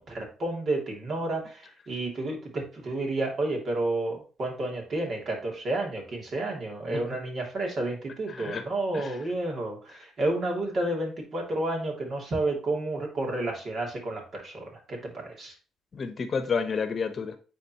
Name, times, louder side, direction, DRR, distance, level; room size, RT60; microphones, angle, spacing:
voice 1, 0.0-15.5, right 2 dB, 50° right, 2.8 m, -31 dB
voice 2, 8.3-8.6 8.9-9.2 15.9-17.4, left 5 dB, 45° left, 1.0 m, -30 dB
9.4 x 3.9 x 3.0 m
cardioid pair, 85°, 0 cm